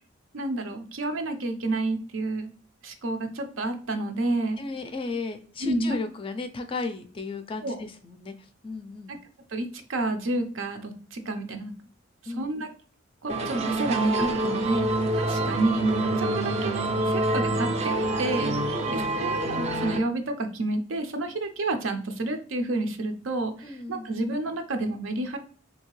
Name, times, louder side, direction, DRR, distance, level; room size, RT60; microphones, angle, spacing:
voice 1, 0.3-2.5 2.8-4.6 5.6-6.0 7.6-7.8 9.1-9.2 9.5-11.7 12.2-12.7 13.2-18.5 18.9-25.4, right 2 dB, 75° right, 6 dB, 0.6 m, -29 dB
voice 2, 4.6-9.1 12.3-12.5 18.7-19.3 23.6-24.1, left 3 dB, 25° left, 8 dB, 0.4 m, -35 dB
sound 1, 13.3-20.0, right 2 dB, 35° right, 0.4 m, -26 dB
3.6 x 2.8 x 3.0 m, 0.42 s
head